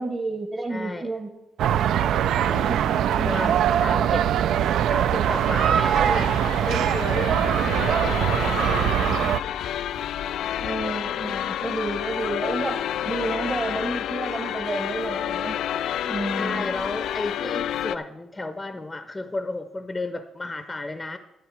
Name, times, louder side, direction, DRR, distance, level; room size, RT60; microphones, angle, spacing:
voice 1, 0.0-1.4 2.7-4.4 7.6-7.9 10.6-12.8 13.0-15.6 16.0-16.7 17.4-17.7, right 2 dB, 25° right, 3 dB, 1.0 m, -31 dB
voice 2, 0.7-1.1 2.4-2.8 3.2-4.3 4.9-6.3 6.6-9.3 16.4-21.2, left 2 dB, 15° left, 10 dB, 0.5 m, -33 dB
sound 1, 1.6-9.4, right 10 dB, 80° right, 0.3 m, -22 dB
sound 2, 4.8-18.0, left 10 dB, 85° left, 0.3 m, -30 dB
10.5 x 10.5 x 4.7 m, 0.94 s
cardioid pair, 120°, 0 cm